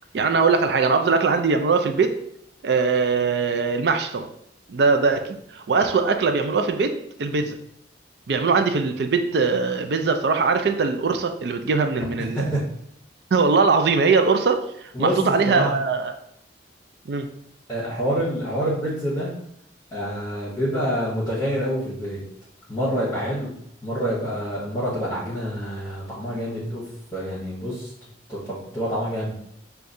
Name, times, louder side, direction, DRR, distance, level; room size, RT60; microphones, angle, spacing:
voice 1, 0.1-2.1 2.6-4.3 4.7-6.9 7.2-7.6 8.3-12.5 13.3-16.1 17.1-17.3, right 4 dB, 55° right, 6 dB, 0.4 m, -21 dB
voice 2, 12.2-12.6 14.9-15.8 17.7-19.3 19.9-22.2 22.7-23.5 23.8-26.8 27.1-27.9 28.3-29.3, equal, 20° left, -8 dB, 0.9 m, -27 dB
6.3 x 2.3 x 2.6 m, 0.72 s
head